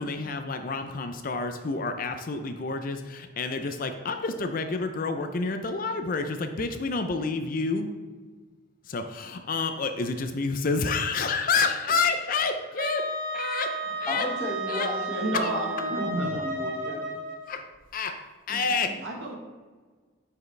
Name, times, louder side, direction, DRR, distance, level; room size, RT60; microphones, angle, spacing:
voice 1, 0.0-7.9 8.8-13.1 13.3-14.3 14.7-14.9 15.3-15.5 17.5-17.7 17.9-19.0, left 4 dB, 45° left, 7 dB, 0.4 m, -29 dB
Wind instrument woodwind instrument, 12.8-17.5, right 2 dB, 45° right, 0.6 m, -33 dB
voice 2, 14.1-17.2 18.5-19.0, left 1 dB, 15° left, -3 dB, 1.2 m, -35 dB
voice 3, 15.2-16.3 19.0-19.4, right 1 dB, 70° right, 0 dB, 1.3 m, -30 dB
7.8 x 4.8 x 3.2 m, 1.4 s
head